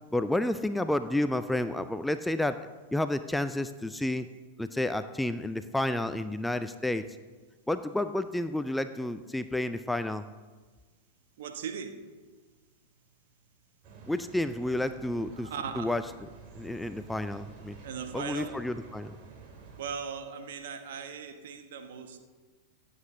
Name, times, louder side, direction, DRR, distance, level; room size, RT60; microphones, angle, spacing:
voice 1, 0.1-4.3 4.6-7.0 7.7-10.3 14.1-15.5 15.8-16.0 16.5-17.8 18.1-19.2, left 1 dB, 5° left, 11 dB, 0.4 m, -30 dB
voice 2, 11.4-12.0 15.3-16.0 17.8-18.7 19.8-22.2, right 6 dB, 55° right, 6 dB, 1.3 m, -38 dB
sound 1, 13.8-19.8, right 3 dB, 40° right, 2.6 m, -50 dB
25.0 x 8.5 x 2.7 m, 1.4 s
figure-of-eight pair, 90°, 0 cm